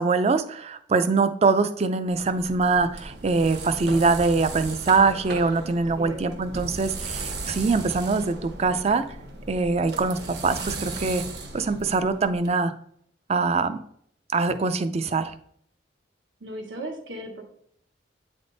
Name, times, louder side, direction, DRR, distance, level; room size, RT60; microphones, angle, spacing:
voice 1, 0.0-9.0 9.5-11.2 11.5-12.7 13.3-13.8 14.3-15.3, right 4 dB, 35° right, 11 dB, 0.4 m, -23 dB
sound 1, 2.1-12.5, right 3 dB, 60° right, 1.0 m, -36 dB
voice 2, 5.9-6.4 16.4-17.4, right 1 dB, 85° right, 1 dB, 1.4 m, -36 dB
8.4 x 3.5 x 4.0 m, 0.66 s
head